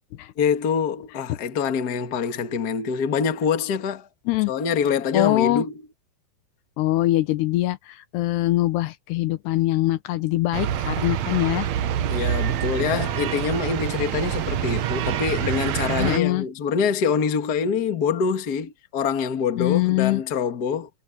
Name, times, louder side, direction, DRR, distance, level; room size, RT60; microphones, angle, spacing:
voice 1, 0.4-4.1 4.5-5.7 12.1-20.9, left 6 dB, 45° left, 1.2 m, -25 dB
voice 2, 5.1-5.6 6.8-7.8 8.1-11.7 16.0-16.5 19.6-20.2, left 17 dB, 90° left, 3.2 m, -22 dB
sound 1, 10.5-16.2, right 10 dB, 80° right, 1.5 m, -26 dB
omnidirectional pair, 4.6 m